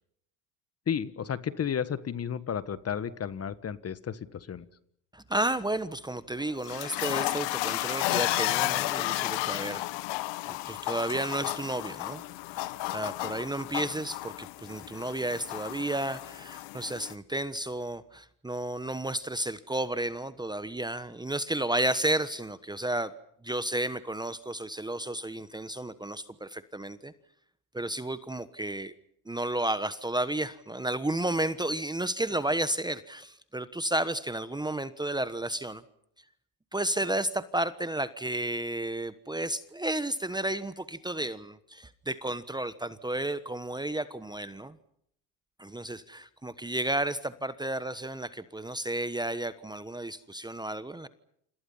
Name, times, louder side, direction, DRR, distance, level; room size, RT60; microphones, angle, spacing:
voice 1, 0.9-4.7, left 8 dB, 30° left, 15 dB, 1.5 m, -32 dB
voice 2, 5.1-9.8 10.5-12.2 12.8-23.1 23.4-27.1 27.7-28.9 29.3-35.8 36.7-44.8 45.6-51.1, right 1 dB, 10° right, 14 dB, 1.2 m, -32 dB
sound 1, 6.3-17.1, left 19 dB, 65° left, 1.3 m, -33 dB
29.5 x 26.5 x 5.7 m, 0.71 s
supercardioid pair, 95°, 46 cm